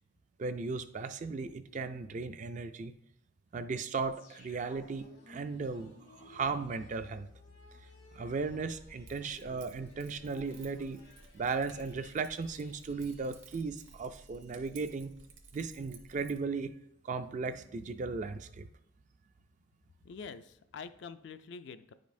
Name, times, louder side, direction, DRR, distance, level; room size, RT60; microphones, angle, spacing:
voice 1, 0.4-2.9 3.5-5.9 6.2-7.3 8.1-11.0 11.3-15.1 15.5-16.7 17.0-18.7, right 4 dB, 35° right, 10 dB, 0.3 m, -36 dB
sound 1, 4.1-14.9 15.2-15.3, left 2 dB, 85° left, 1.6 m, -58 dB
Keys jangling, 8.4-16.4, right 3 dB, 65° right, 0.8 m, -56 dB
voice 2, 20.0-21.9, left 5 dB, 55° left, 12 dB, 0.3 m, -46 dB
9.8 x 5.1 x 2.6 m, 0.75 s
head